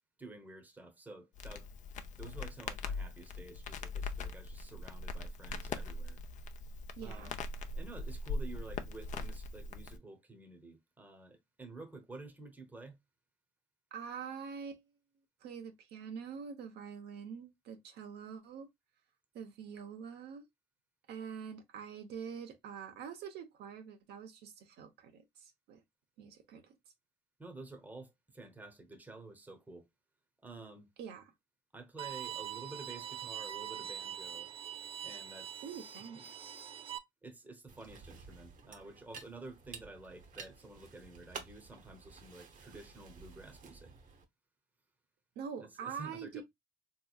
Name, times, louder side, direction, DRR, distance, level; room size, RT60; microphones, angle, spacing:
voice 1, 0.2-1.7 2.2-6.2 7.0-7.3 7.7-13.0 27.4-29.9 30.4-30.9 31.7-34.5 35.0-35.6 36.1-36.2 37.2-43.9 45.6-46.4, right 2 dB, 10° right, 0.8 m, -51 dB
Crackle, 1.4-10.0, left 3 dB, 45° left, 0.5 m, -41 dB
voice 2, 7.0-7.3 13.9-14.8 15.4-18.7 19.3-20.4 21.1-25.8 26.2-26.8 31.0-31.3 35.6-36.4 45.4-46.4, right 7 dB, 75° right, 0.9 m, -45 dB
Bowed string instrument, 32.0-37.0, right 10 dB, 35° right, 0.4 m, -43 dB
sound 1, 37.7-44.2, right 5 dB, 50° right, 0.9 m, -52 dB
3.6 x 3.0 x 2.3 m
cardioid pair, 110°, 17 cm